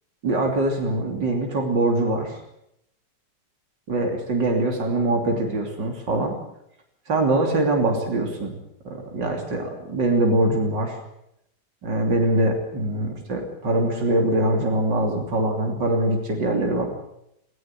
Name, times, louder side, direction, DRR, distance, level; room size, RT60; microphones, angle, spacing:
voice 1, 0.2-2.4 3.9-6.3 7.1-8.5 8.9-11.0 11.8-16.9, right 1 dB, 80° right, 2 dB, 3.7 m, -23 dB
18.5 x 17.0 x 9.0 m, 0.78 s
omnidirectional pair, 1.9 m